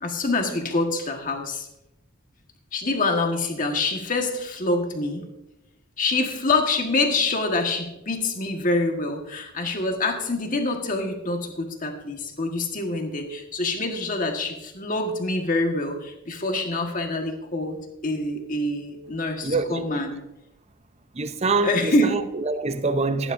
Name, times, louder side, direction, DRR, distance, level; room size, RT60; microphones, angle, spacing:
voice 1, 0.0-1.7 2.7-5.3 6.0-17.8 18.0-20.2 21.6-22.1, left 2 dB, 40° left, 1.5 m, -26 dB
voice 2, 19.4-20.0 21.1-23.3, right 3 dB, 30° right, 0.6 m, -25 dB
15.0 x 11.0 x 2.6 m
head